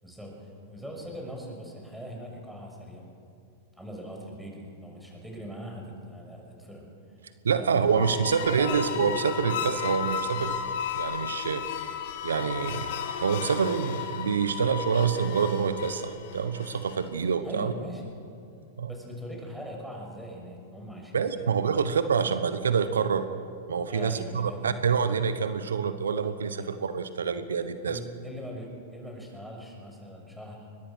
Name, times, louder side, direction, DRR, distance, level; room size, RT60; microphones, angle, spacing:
voice 1, 0.0-3.0 3.8-7.2 7.5-8.2 8.6-9.0 17.4-18.0 18.9-21.4 21.7-21.8 22.2-22.3 23.9-24.8 26.6-26.7 27.9-30.8, equal, 5° right, 0 dB, 6.2 m, -41 dB
voice 2, 7.4-10.6 10.9-11.9 12.2-12.9 13.2-17.7 18.8-18.9 21.1-23.3 23.7-28.0, right 6 dB, 85° right, 11 dB, 1.1 m, -27 dB
sound 1, 7.8-17.2, left 8 dB, 65° left, 2.0 m, -34 dB
22.5 x 20.5 x 6.3 m, 2.5 s
hypercardioid pair, 105°, 0 cm